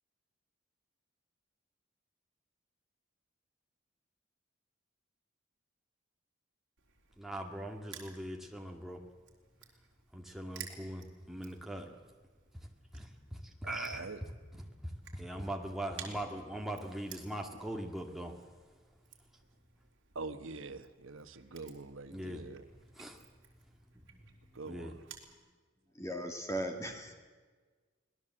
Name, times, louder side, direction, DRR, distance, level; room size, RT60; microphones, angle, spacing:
Crushing, 6.8-25.3, right 8 dB, 60° right, 3.8 m, -56 dB
voice 1, 7.2-9.0 10.1-11.9 12.9-14.1 14.8-18.4 22.1-22.4 23.0-23.2 24.7-24.9, right 1 dB, ahead, 1 dB, 2.0 m, -41 dB
voice 2, 13.6-14.2 20.1-22.7 24.5-25.1, right 3 dB, 80° right, 9 dB, 1.2 m, -44 dB
voice 3, 25.9-27.1, equal, 15° left, 4 dB, 2.4 m, -37 dB
25.0 x 18.5 x 7.8 m, 1.4 s
head